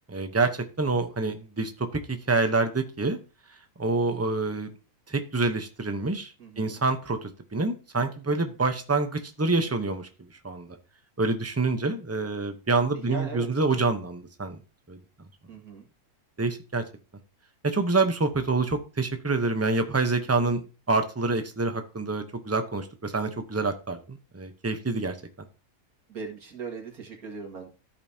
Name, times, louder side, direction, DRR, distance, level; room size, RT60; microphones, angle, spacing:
voice 1, 0.1-3.2 3.8-4.7 5.1-10.1 10.4-10.8 11.2-14.6 14.9-15.3 16.4-16.8 17.6-20.6 20.9-25.2, right 3 dB, 15° right, 7 dB, 0.6 m, -27 dB
voice 2, 6.4-6.8 13.0-13.5 15.5-15.9 26.1-27.7, right 4 dB, 80° right, 2 dB, 2.4 m, -39 dB
14.0 x 5.3 x 2.8 m, 0.34 s
omnidirectional pair, 1.6 m